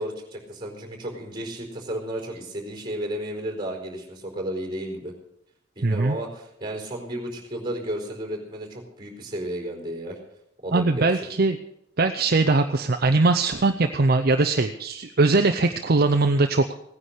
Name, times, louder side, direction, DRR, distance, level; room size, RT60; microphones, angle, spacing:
voice 1, 0.0-5.1 5.8-10.2 10.6-11.1, right 1 dB, 25° right, 2 dB, 4.4 m, -33 dB
voice 2, 5.8-6.2 10.7-11.6 12.0-16.7, right 3 dB, 50° right, 6 dB, 0.7 m, -21 dB
17.5 x 9.8 x 6.6 m, 0.78 s
head